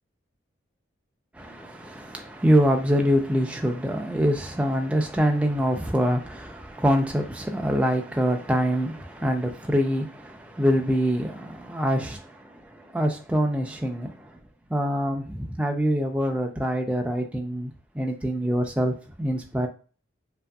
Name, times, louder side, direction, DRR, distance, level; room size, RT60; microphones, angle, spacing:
voice 1, 1.3-14.4 14.7-19.7, equal, 5° right, 0.3 m, -25 dB
2.8 x 2.6 x 2.3 m
head